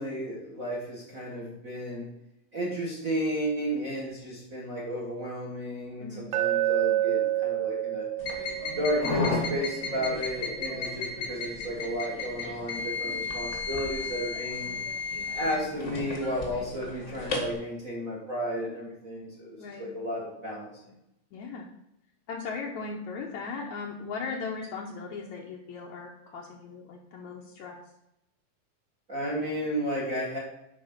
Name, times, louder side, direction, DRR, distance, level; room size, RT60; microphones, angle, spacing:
voice 1, 0.0-2.1 2.5-8.1 8.8-14.7 15.4-20.7 29.1-30.4, equal, 50° right, -3 dB, 1.0 m, -33 dB
Glass, 6.3-10.5, right 14 dB, 85° right, 2.6 m, -29 dB
sound 1, 8.2-17.5, left 3 dB, 50° left, 0.8 m, -33 dB
voice 2, 19.6-19.9 21.3-21.7 22.3-27.8, left 4 dB, 80° left, -1 dB, 1.7 m, -38 dB
11.0 x 4.3 x 5.5 m, 0.84 s
omnidirectional pair, 4.5 m